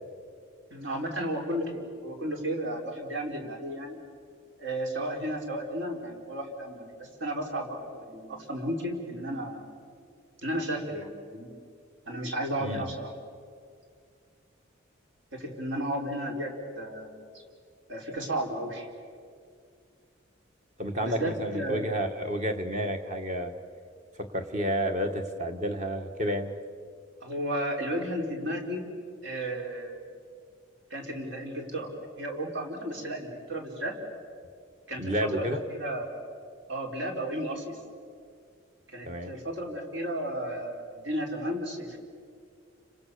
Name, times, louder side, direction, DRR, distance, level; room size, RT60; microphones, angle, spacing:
voice 1, 0.7-4.0 4.6-9.6 10.4-11.5 12.1-13.1 15.3-17.4 17.9-18.9 21.0-21.8 27.2-28.9 29.2-30.0 30.9-31.9 32.2-33.9 34.9-36.1 36.7-37.8 38.9-42.0, right 1 dB, 65° right, 1 dB, 4.7 m, -33 dB
voice 2, 12.6-12.9 20.8-23.5 24.3-26.5 35.0-35.6 39.0-39.3, equal, 35° right, 5 dB, 1.9 m, -30 dB
30.0 x 26.5 x 7.0 m, 2.2 s
head